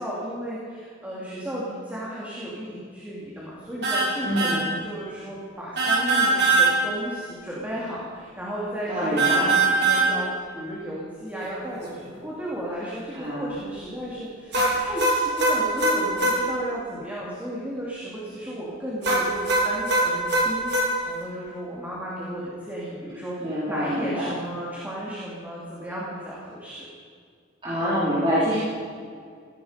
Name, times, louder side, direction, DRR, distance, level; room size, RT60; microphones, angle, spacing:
voice 1, 0.0-26.8, equal, 10° right, -7 dB, 3.0 m, -34 dB
sound 1, 3.8-4.1 4.4-4.6 5.8-6.7 9.2-10.1 14.5-16.4 19.0-20.9, right 3 dB, 55° right, 3.6 m, -21 dB
voice 2, 4.2-4.7 8.9-9.5 13.1-13.5 23.4-24.3 27.6-28.6, equal, 25° right, -10 dB, 4.0 m, -26 dB
16.5 x 16.0 x 5.2 m, 2.2 s
head